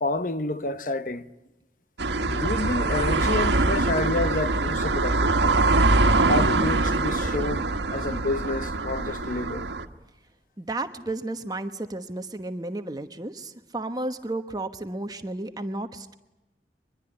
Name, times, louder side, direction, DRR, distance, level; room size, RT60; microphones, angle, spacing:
voice 1, 0.0-1.3 2.3-5.5 6.3-9.7, left 2 dB, 50° left, 1.1 m, -29 dB
sound 1, 2.0-9.8, right 2 dB, 80° right, 1.6 m, -23 dB
voice 2, 10.6-16.1, right 2 dB, 20° right, 1.1 m, -33 dB
23.5 x 22.0 x 9.9 m
head